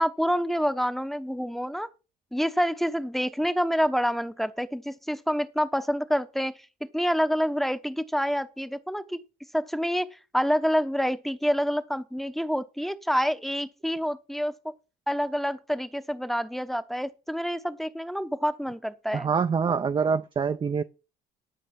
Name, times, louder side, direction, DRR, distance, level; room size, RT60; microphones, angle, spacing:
voice 1, 0.0-1.9 2.3-6.5 6.9-9.2 9.5-14.5 15.1-19.3, equal, ahead, 0.9 m, -27 dB
voice 2, 19.1-20.8, right 6 dB, 30° right, 0.6 m, -25 dB
12.5 x 5.2 x 5.9 m
cardioid pair, 110°, 17 cm